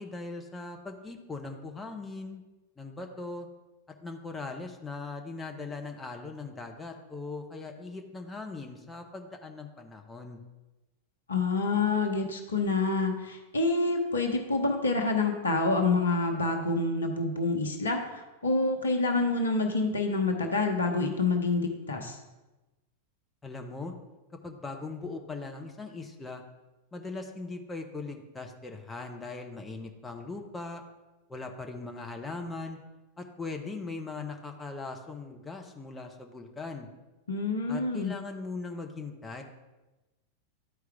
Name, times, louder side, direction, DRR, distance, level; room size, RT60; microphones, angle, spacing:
voice 1, 0.0-2.4 2.8-3.5 4.0-10.4 23.4-23.9 24.4-26.4 26.9-30.8 31.3-32.8 33.2-36.9 37.7-39.4, left 3 dB, 10° left, 3 dB, 0.8 m, -40 dB
voice 2, 11.3-22.2 37.3-38.1, left 3 dB, 75° left, 4 dB, 0.9 m, -27 dB
12.0 x 4.7 x 3.5 m, 1.1 s
figure-of-eight pair, 90°, 0 cm